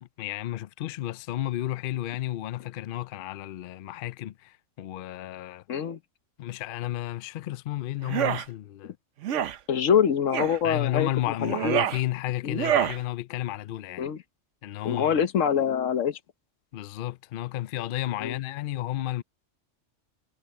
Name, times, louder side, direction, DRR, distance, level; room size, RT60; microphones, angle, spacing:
voice 1, 0.0-5.6 6.4-9.0 10.6-14.1 14.6-15.1 16.7-19.2, left 14 dB, 60° left, 0.6 m, -32 dB
voice 2, 5.7-6.0 8.8-8.9 9.7-11.1 11.4-11.7 12.4-12.6 14.0-14.2 14.8-16.2 18.2-18.4, left 8 dB, 90° left, 1.3 m, -25 dB
sound 1, 8.0-8.4 9.2-9.6 10.3-10.6 11.4-12.0 12.5-13.0, right 10 dB, 75° right, 1.1 m, -26 dB
omnidirectional pair, 1.3 m